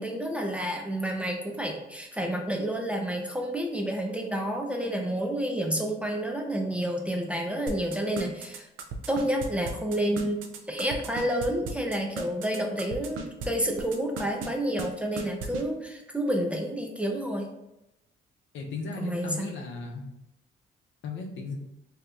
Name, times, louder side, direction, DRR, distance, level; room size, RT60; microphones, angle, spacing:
voice 1, 0.0-8.7 9.1-10.4 10.7-17.5 19.0-19.5, right 1 dB, 5° right, 1 dB, 0.5 m, -29 dB
sound 1, 7.7-13.5 13.8-14.5 14.8-14.9 15.2-15.6, right 4 dB, 85° right, 0.5 m, -36 dB
voice 2, 18.5-20.0 21.0-21.5, left 4 dB, 70° left, 0 dB, 0.7 m, -36 dB
2.8 x 2.4 x 3.3 m, 0.88 s
cardioid pair, 90°, 20 cm